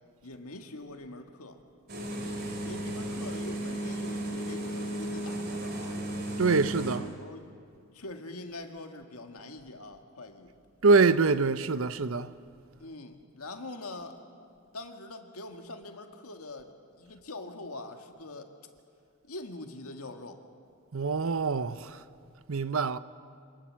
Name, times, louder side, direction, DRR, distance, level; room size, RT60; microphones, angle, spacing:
voice 1, 0.2-1.6 2.6-6.1 6.9-7.5 7.9-10.5 12.8-14.2 14.7-18.5 19.3-20.4, left 2 dB, 80° left, 1.9 m, -43 dB
sound 1, 1.9-7.0, right 1 dB, 45° right, 3.1 m, -34 dB
voice 2, 6.4-7.1 10.8-12.3 20.9-22.0 22.5-23.0, right 4 dB, 65° right, 0.7 m, -24 dB
26.0 x 19.5 x 7.5 m
head